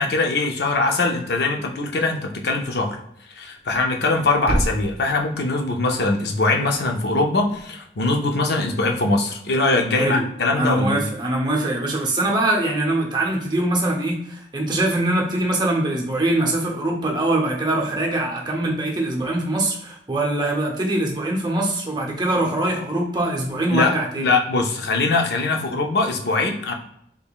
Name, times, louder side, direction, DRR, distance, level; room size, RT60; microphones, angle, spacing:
voice 1, 0.0-3.0 3.4-11.0 23.7-26.7, left 3 dB, 65° left, 3 dB, 0.5 m, -22 dB
Thump thud, 3.6-7.7, right 1 dB, 60° right, 0.6 m, -32 dB
voice 2, 10.5-24.3, right 1 dB, 25° right, 0 dB, 0.7 m, -23 dB
3.6 x 3.4 x 2.3 m, 0.72 s
head